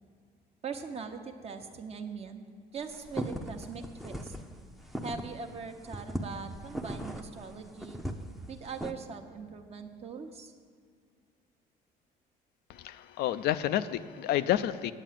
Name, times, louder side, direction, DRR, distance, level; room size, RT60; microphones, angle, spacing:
voice 1, 0.6-2.5 2.7-4.3 5.0-8.0 8.5-10.5, right 5 dB, 40° right, 5 dB, 1.0 m, -41 dB
sound 1, 2.8-5.5 5.8-8.9, equal, ahead, 0.7 m, -38 dB
voice 2, 12.7-14.9, left 12 dB, 75° left, 12 dB, 0.5 m, -29 dB
9.1 x 8.1 x 7.5 m, 2.1 s
cardioid pair, 110°, 17 cm